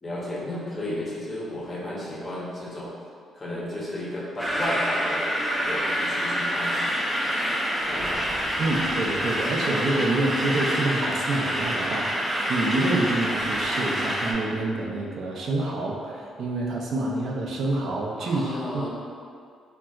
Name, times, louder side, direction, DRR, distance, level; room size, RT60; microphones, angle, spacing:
voice 1, 0.0-2.9 3.3-5.3 5.6-6.8 7.9-8.3 18.2-18.9, left 1 dB, 30° left, -5 dB, 0.8 m, -33 dB
sound 1, 4.4-14.3, equal, 5° right, 0.5 m, -27 dB
voice 2, 8.6-18.9, right 2 dB, 65° right, -2 dB, 0.4 m, -27 dB
3.8 x 2.2 x 2.3 m, 2.2 s
cardioid pair, 90°, 0 cm